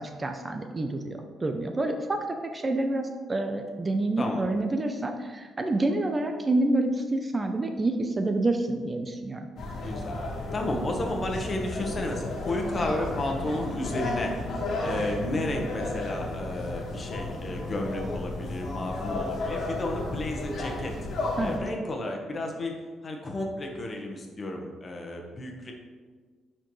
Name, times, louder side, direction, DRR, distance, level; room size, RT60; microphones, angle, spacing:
voice 1, 0.0-9.5 21.4-21.6, right 2 dB, 25° right, 5 dB, 0.6 m, -28 dB
sound 1, 9.6-21.6, left 2 dB, 65° left, 1.6 m, -33 dB
voice 2, 9.8-10.2 10.5-14.3 14.8-20.9 21.4-22.7 23.0-25.7, left 1 dB, 35° left, 2 dB, 1.2 m, -32 dB
9.9 x 4.5 x 3.1 m, 1.5 s
cardioid pair, 90°, 0 cm